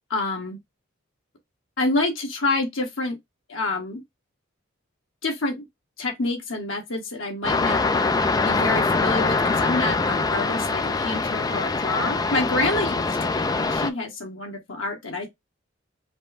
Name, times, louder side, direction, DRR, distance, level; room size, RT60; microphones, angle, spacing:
voice 1, 0.1-0.6 1.8-3.2 3.5-4.0 5.2-5.7 6.0-7.8 8.4-13.0 13.3-15.3, left 2 dB, 85° left, 1.5 m, -27 dB
sound 1, 7.4-13.9, left 3 dB, 20° left, 0.3 m, -23 dB
5.2 x 2.1 x 4.1 m
head